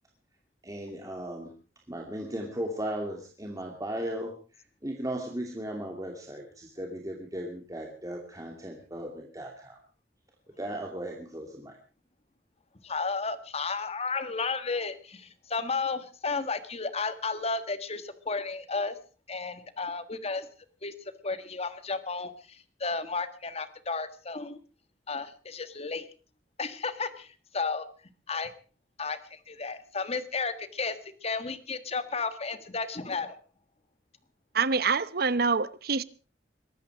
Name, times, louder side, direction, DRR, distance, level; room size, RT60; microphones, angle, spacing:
voice 1, 0.6-1.5 1.9-4.4 4.8-9.8 10.6-11.8, right 1 dB, 20° right, 2.7 m, -36 dB
voice 2, 12.8-18.9 19.3-20.5 20.8-20.9 21.2-24.6 25.1-26.1 26.6-27.8 28.3-28.5 29.0-33.4, left 4 dB, 35° left, 1.7 m, -33 dB
voice 3, 34.5-36.0, right 5 dB, 60° right, 0.9 m, -26 dB
22.5 x 13.0 x 4.9 m
head